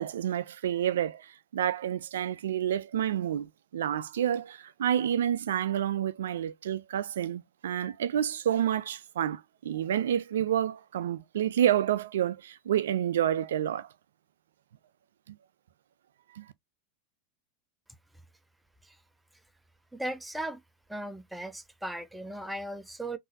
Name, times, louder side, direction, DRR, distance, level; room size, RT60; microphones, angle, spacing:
voice 1, 0.0-13.9 15.3-15.4 16.3-16.5, right 10 dB, 80° right, 0.3 m, -29 dB
voice 2, 19.9-20.6 20.9-23.2, right 1 dB, 5° right, 0.6 m, -37 dB
3.7 x 2.6 x 2.6 m
hypercardioid pair, 90°, 0 cm